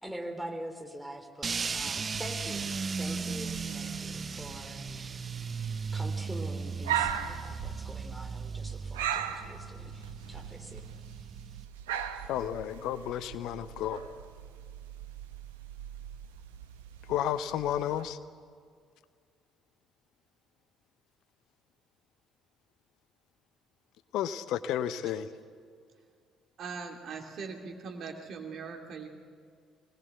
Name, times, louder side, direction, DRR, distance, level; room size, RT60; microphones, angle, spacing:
voice 1, 0.0-5.4 5.9-10.8, equal, 5° right, 3 dB, 3.4 m, -44 dB
sound 1, 1.4-11.6, right 5 dB, 35° right, 0.7 m, -37 dB
sound 2, 1.4-18.0, right 9 dB, 75° right, 0.9 m, -40 dB
voice 2, 12.3-14.0 17.1-18.2 24.1-25.3, left 10 dB, 60° left, 14 dB, 0.7 m, -32 dB
voice 3, 26.6-29.1, right 5 dB, 50° right, 3 dB, 2.7 m, -40 dB
24.0 x 19.5 x 8.0 m, 2.1 s
figure-of-eight pair, 50°, 0 cm